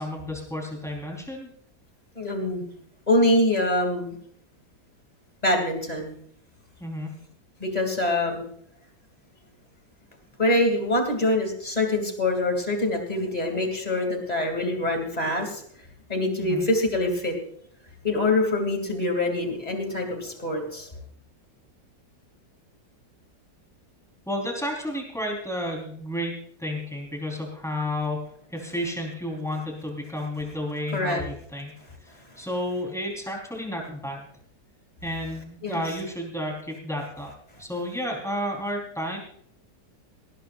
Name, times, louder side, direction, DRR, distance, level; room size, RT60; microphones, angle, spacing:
voice 1, 0.0-1.5 6.8-7.1 16.4-16.7 24.3-26.3 26.6-28.2 28.5-31.7 32.0-34.3 35.0-37.3 37.6-39.2, left 1 dB, ahead, 0 dB, 4.1 m, -31 dB
voice 2, 2.1-2.7 3.1-4.2 5.4-6.1 7.6-8.4 10.4-15.6 16.1-17.4 18.0-20.9 30.9-31.2 35.6-35.8, left 1 dB, 20° left, 3 dB, 2.9 m, -24 dB
19.0 x 18.5 x 2.6 m, 0.64 s
omnidirectional pair, 1.9 m